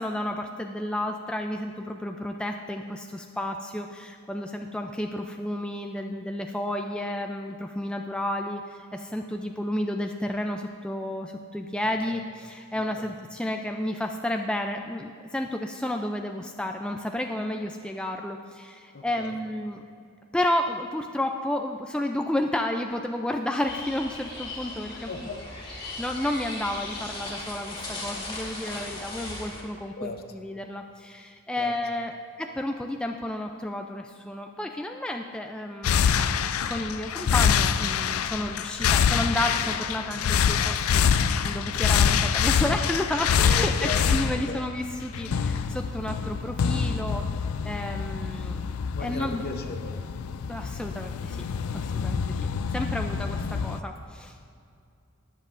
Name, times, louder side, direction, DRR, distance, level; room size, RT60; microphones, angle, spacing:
voice 1, 0.0-19.8 20.3-25.1 25.8-32.1 32.4-47.3 47.6-48.7 49.0-49.4 50.5-51.5 51.7-52.4 52.7-54.4, left 1 dB, 5° left, 3 dB, 0.3 m, -31 dB
voice 2, 12.7-13.1 18.9-19.4 24.9-25.4 30.0-30.2 31.6-31.7 32.1-32.3 43.5-44.1 44.5-44.7 48.9-50.0, left 3 dB, 45° left, 5 dB, 0.8 m, -37 dB
sound 1, 23.7-29.6, left 2 dB, 25° left, 2.1 m, -37 dB
sound 2, 35.8-53.8, left 7 dB, 75° left, 0.4 m, -26 dB
21.5 x 7.5 x 2.5 m, 2.4 s
head